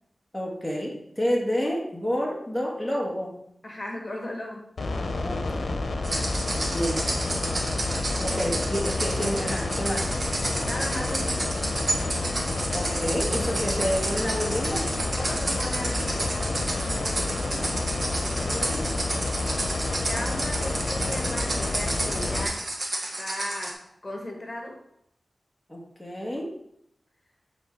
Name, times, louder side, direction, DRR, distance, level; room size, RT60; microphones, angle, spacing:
voice 1, 0.3-3.3 5.2-5.8 6.7-7.1 7.3-7.4 8.2-10.1 12.7-14.9 18.2-18.9 25.7-26.5, equal, ahead, -3 dB, 1.5 m, -29 dB
voice 2, 3.6-4.7 8.1-8.4 10.6-11.5 15.1-17.7 19.9-22.7 23.2-24.8, left 1 dB, 35° left, 0 dB, 1.6 m, -37 dB
sound 1, 4.8-22.5, left 2 dB, 70° left, 0.9 m, -29 dB
sound 2, 6.0-23.7, right 1 dB, 45° right, 1.5 m, -31 dB
9.1 x 3.8 x 4.5 m, 0.76 s
wide cardioid pair, 75°, 0 cm